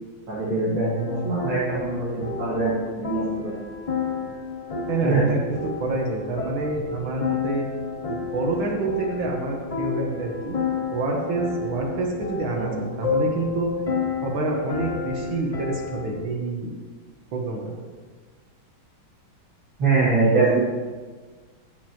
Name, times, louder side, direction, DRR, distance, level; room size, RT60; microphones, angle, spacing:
voice 1, 0.3-3.6 5.0-5.3 12.6-12.8 19.8-20.6, right 3 dB, 75° right, -11 dB, 3.5 m, -23 dB
sound 1, 0.9-16.2, left 5 dB, 45° left, 0.4 m, -31 dB
voice 2, 4.9-7.7 8.1-10.6 10.9-13.7 14.2-16.7 17.3-17.7, right 2 dB, 90° right, -1 dB, 2.2 m, -27 dB
14.5 x 8.1 x 3.1 m, 1.4 s
omnidirectional pair, 2.2 m